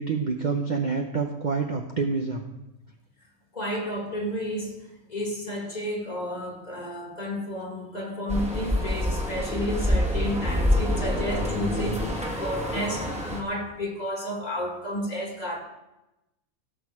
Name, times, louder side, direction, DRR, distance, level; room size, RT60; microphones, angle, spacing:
voice 1, 0.0-2.4, right 4 dB, 40° right, 3 dB, 0.7 m, -27 dB
voice 2, 3.5-15.6, equal, 30° left, 1 dB, 2.2 m, -31 dB
sound 1, 8.3-13.4, left 1 dB, 5° right, 1.6 m, -26 dB
16.5 x 6.4 x 4.8 m, 0.94 s
omnidirectional pair, 1.5 m